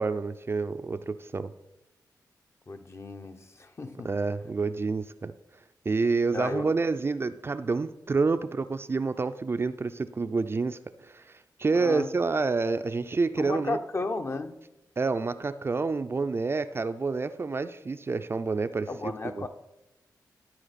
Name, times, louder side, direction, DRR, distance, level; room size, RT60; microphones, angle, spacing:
voice 1, 0.0-1.5 4.0-5.3 5.9-11.3 11.6-13.8 15.0-19.5, right 4 dB, 35° right, 11 dB, 0.4 m, -28 dB
voice 2, 2.7-4.1 6.3-6.7 11.7-12.1 13.4-14.6 18.9-19.5, left 3 dB, 40° left, 7 dB, 0.7 m, -34 dB
13.0 x 4.5 x 4.1 m, 0.93 s
cardioid pair, 75°, 7 cm